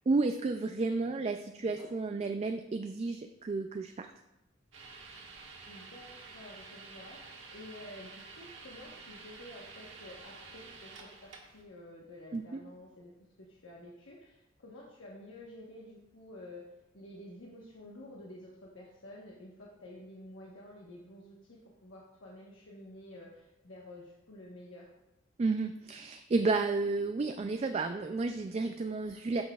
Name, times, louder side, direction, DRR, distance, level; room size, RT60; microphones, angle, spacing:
voice 1, 0.1-4.1 12.3-12.6 25.4-29.4, right 3 dB, 35° right, 6 dB, 0.3 m, -32 dB
sound 1, 4.7-11.6, right 4 dB, 70° right, 1.4 m, -50 dB
voice 2, 5.7-13.1 13.4-16.6 16.9-24.9, left 1 dB, 85° left, -4 dB, 1.2 m, -50 dB
12.5 x 6.0 x 2.3 m, 0.94 s
head